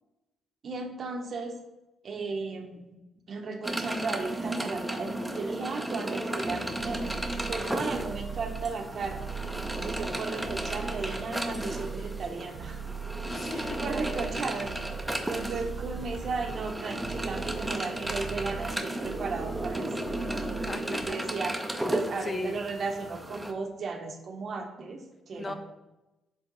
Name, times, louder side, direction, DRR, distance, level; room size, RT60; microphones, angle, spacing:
voice 1, 0.6-1.6 2.0-3.0 3.3-9.2 9.7-12.8 13.5-14.7 15.3-19.9 20.9-21.6 21.9-25.5, right 4 dB, 50° right, 5 dB, 0.8 m, -35 dB
sound 1, 3.6-23.5, right 1 dB, 5° right, 0.6 m, -34 dB
sound 2, 6.4-21.1, right 6 dB, 80° right, 0.5 m, -40 dB
voice 2, 13.2-13.8 20.7-21.2 22.2-22.6 25.3-25.5, left 2 dB, 35° left, 6 dB, 0.7 m, -36 dB
7.5 x 3.2 x 3.9 m, 1.0 s
cardioid pair, 90°, 0 cm